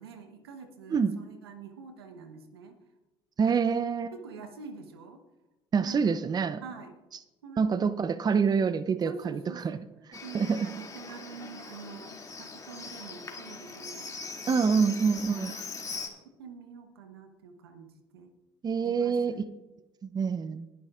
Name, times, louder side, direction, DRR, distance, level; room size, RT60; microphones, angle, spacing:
voice 1, 0.0-2.8 3.4-3.6 4.1-5.2 5.8-6.2 6.6-7.0 7.4-7.8 9.0-9.8 10.2-14.2 14.5-15.7 16.4-17.9 18.1-18.3 18.8-19.4, right 5 dB, 85° right, 7 dB, 1.2 m, -46 dB
voice 2, 3.4-4.1 5.7-6.6 7.6-9.8 10.1-10.7 14.5-15.5 18.6-19.3 20.0-20.7, right 5 dB, 30° right, 14 dB, 0.7 m, -26 dB
Livestock farm animals working animals, 10.1-16.1, left 4 dB, 25° left, 2.5 m, -41 dB
20.5 x 10.5 x 2.5 m, 1.0 s
hypercardioid pair, 60°, 13 cm